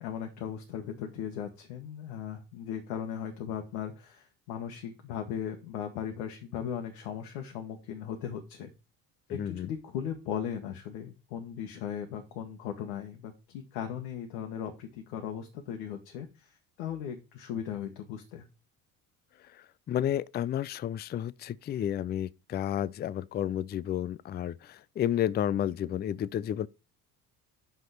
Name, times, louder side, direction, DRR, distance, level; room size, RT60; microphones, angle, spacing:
voice 1, 0.0-8.7 9.3-18.5, left 8 dB, 75° left, 1.4 m, -37 dB
voice 2, 9.3-9.7 19.9-26.7, left 10 dB, 25° left, 0.4 m, -31 dB
6.0 x 5.2 x 6.4 m
hypercardioid pair, 60°, 44 cm